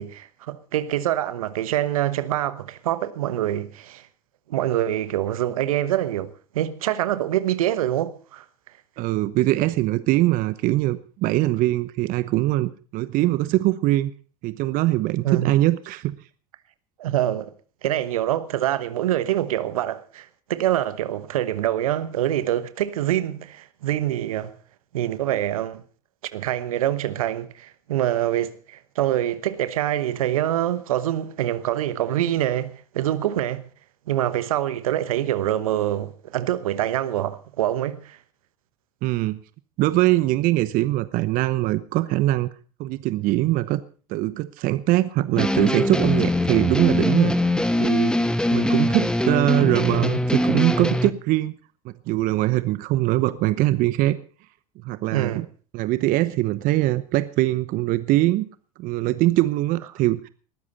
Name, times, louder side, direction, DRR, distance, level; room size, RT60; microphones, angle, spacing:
voice 1, 0.0-4.1 4.5-8.4 11.4-11.5 15.2-15.5 17.0-17.5 17.8-24.5 24.9-25.8 26.3-33.6 34.1-38.2 55.1-55.5, right 12 dB, 75° right, 1.1 m, -25 dB
voice 2, 9.0-14.1 14.4-16.1 39.0-39.4 39.8-42.5 42.8-43.8 44.1-47.3 47.8-48.2 48.5-51.5 51.8-54.2 54.8-55.5 55.7-58.5 58.8-60.3, right 16 dB, 50° right, 0.9 m, -22 dB
sound 1, 45.4-51.1, left 1 dB, 5° left, 1.1 m, -22 dB
20.0 x 13.5 x 4.1 m
hypercardioid pair, 80°, 18 cm